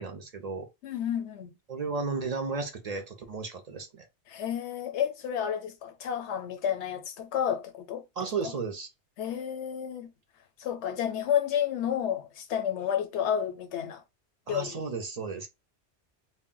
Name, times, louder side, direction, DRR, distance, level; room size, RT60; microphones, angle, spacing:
voice 1, 0.0-0.7 1.7-4.1 8.2-8.9 14.5-15.5, right 4 dB, 55° right, 0.4 m, -34 dB
voice 2, 0.8-1.5 4.3-8.0 8.4-8.5 9.2-10.1 10.6-14.0 14.5-14.8, left 9 dB, 85° left, 0.9 m, -31 dB
2.1 x 2.1 x 3.6 m
omnidirectional pair, 1.2 m